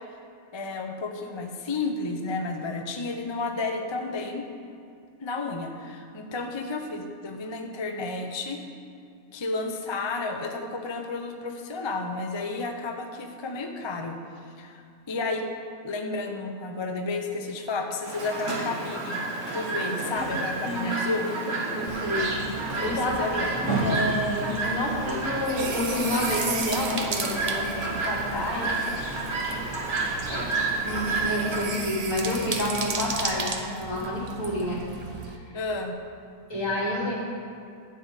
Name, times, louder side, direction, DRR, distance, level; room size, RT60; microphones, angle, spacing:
voice 1, 0.5-4.5 5.2-8.6 9.3-14.2 14.6-15.4 15.8-19.2 19.5-21.3 22.0-22.1 22.8-23.8 33.6-33.7 35.5-35.9, left 3 dB, 30° left, 3 dB, 0.5 m, -32 dB
Chirp tweet, 18.0-31.6, right 3 dB, 80° right, 2.2 m, -30 dB
voice 2, 20.6-21.0 21.7-22.3 22.8-23.2 23.5-28.7 30.2-30.5 30.8-34.8 35.4-35.6 36.5-37.2, left 1 dB, 60° left, -7 dB, 3.6 m, -29 dB
sound 1, 21.9-35.4, right 4 dB, 35° right, 0.6 m, -35 dB
12.0 x 5.0 x 8.3 m, 2.5 s
omnidirectional pair, 1.5 m